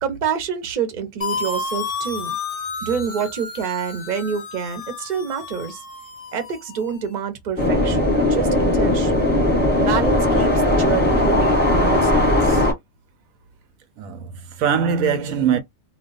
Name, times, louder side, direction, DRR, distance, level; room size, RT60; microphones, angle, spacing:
voice 1, 0.0-2.4 2.8-5.8 6.3-9.3 9.8-12.7, right 7 dB, 45° right, 0.7 m, -27 dB
sound 1, 1.2-7.0, left 4 dB, 40° left, 0.5 m, -31 dB
sound 2, 7.6-12.7, left 1 dB, 10° left, 0.8 m, -18 dB
voice 2, 14.0-15.6, right 7 dB, 80° right, 1.0 m, -22 dB
2.3 x 2.2 x 3.8 m
omnidirectional pair, 1.4 m